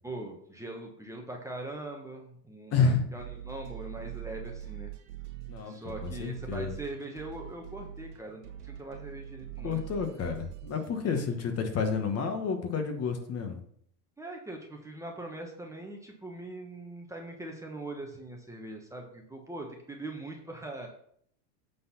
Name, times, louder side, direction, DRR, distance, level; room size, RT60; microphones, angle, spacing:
voice 1, 0.0-4.9 5.7-10.1 11.0-11.3 14.2-20.9, right 2 dB, 5° right, 1 dB, 1.1 m, -42 dB
voice 2, 2.7-3.0 5.5-6.7 9.6-13.6, left 5 dB, 30° left, 5 dB, 1.3 m, -30 dB
sound 1, 3.2-10.9, right 12 dB, 75° right, 1.7 m, -43 dB
8.5 x 4.1 x 5.7 m, 0.65 s
supercardioid pair, 125°, 47 cm